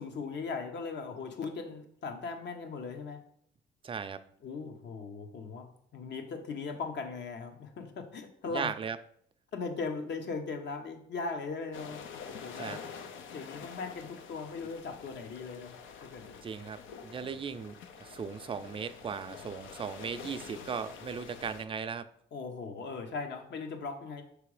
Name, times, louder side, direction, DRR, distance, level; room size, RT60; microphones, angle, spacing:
voice 1, 0.0-3.2 4.4-8.7 9.5-12.8 13.3-15.7 16.0-16.6 17.1-17.4 22.3-24.2, left 4 dB, 65° left, 5 dB, 1.1 m, -39 dB
voice 2, 3.8-4.2 8.5-9.0 12.6-12.8 16.4-22.1, right 6 dB, 25° right, 10 dB, 0.4 m, -37 dB
sound 1, 11.7-21.7, left 6 dB, 80° left, 0.7 m, -47 dB
6.1 x 3.4 x 4.8 m, 0.67 s
cardioid pair, 90°, 20 cm